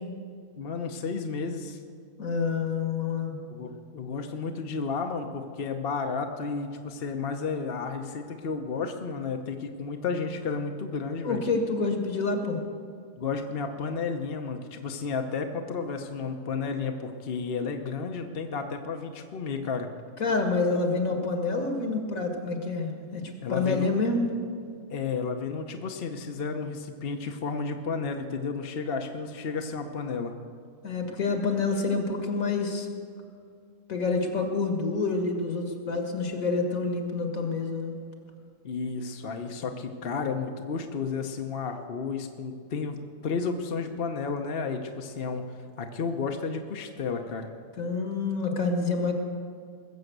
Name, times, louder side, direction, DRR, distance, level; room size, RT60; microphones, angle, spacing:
voice 1, 0.6-1.8 3.5-11.4 13.2-19.9 23.4-23.9 24.9-30.3 38.6-45.4 45.8-47.5, left 5 dB, 45° left, 4 dB, 1.0 m, -32 dB
voice 2, 2.2-3.4 11.2-12.6 20.2-23.2 23.5-24.2 30.8-32.9 33.9-38.0 47.8-49.1, left 3 dB, 65° left, 4 dB, 2.1 m, -27 dB
20.5 x 7.1 x 7.9 m, 2.3 s
omnidirectional pair, 1.5 m